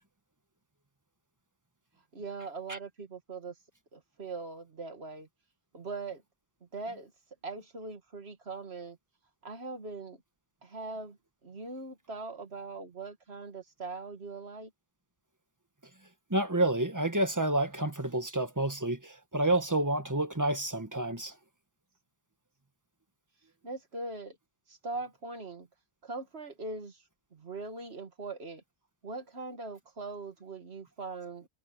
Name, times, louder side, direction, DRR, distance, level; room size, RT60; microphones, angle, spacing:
voice 1, 2.1-3.5 3.9-5.3 5.7-6.2 6.7-7.1 7.4-9.0 9.4-10.2 10.6-11.2 11.4-14.7 23.6-24.4 24.7-25.7 26.0-27.0 27.3-28.6 29.0-31.5, right 3 dB, 90° right, 2.3 m, -41 dB
voice 2, 16.3-21.3, right 1 dB, 20° right, 1.5 m, -29 dB
omnidirectional pair, 1.0 m